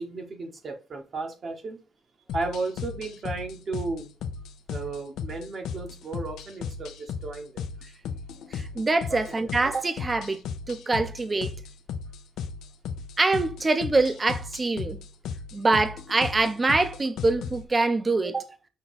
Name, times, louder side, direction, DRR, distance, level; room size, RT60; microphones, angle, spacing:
voice 1, 0.0-1.8 2.3-4.1 4.7-7.7 9.1-9.4, right 3 dB, 50° right, 1.0 m, -34 dB
sound 1, 2.3-17.7, left 6 dB, 80° left, 0.5 m, -36 dB
voice 2, 8.5-10.4 10.7-11.5 13.2-15.0 15.5-18.5, right 3 dB, 25° right, 0.6 m, -24 dB
5.4 x 2.3 x 4.0 m
cardioid pair, 90°, 0 cm